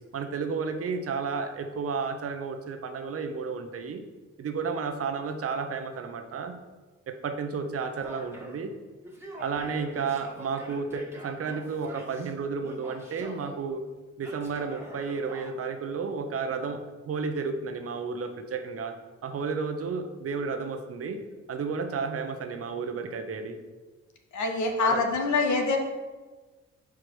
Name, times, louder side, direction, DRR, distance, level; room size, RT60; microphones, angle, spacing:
voice 1, 0.1-4.0 4.4-6.5 7.1-8.7 9.3-13.8 14.2-19.0 19.2-21.2 21.5-23.6 24.8-25.0, right 5 dB, 50° right, 7 dB, 0.9 m, -32 dB
Male speech man speaking / Yell, 8.0-8.6 9.0-12.3 12.6-13.6 14.2-15.5, equal, 10° right, 1.6 m, -45 dB
voice 2, 24.3-25.8, left 3 dB, 75° left, 3 dB, 1.2 m, -25 dB
4.9 x 4.8 x 6.1 m, 1.3 s
cardioid pair, 90°, 30 cm